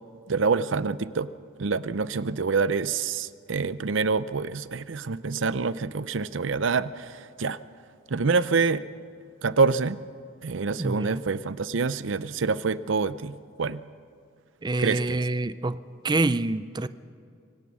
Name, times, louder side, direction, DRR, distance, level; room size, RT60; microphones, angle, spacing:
voice 1, 0.3-1.3 1.6-7.6 8.1-8.8 9.4-10.0 10.4-13.8 14.8-15.2, right 4 dB, 75° right, 15 dB, 0.6 m, -26 dB
voice 2, 10.8-11.2 14.6-15.8 16.0-16.9, right 2 dB, 20° right, 15 dB, 0.5 m, -26 dB
25.0 x 18.0 x 6.2 m, 2.4 s
head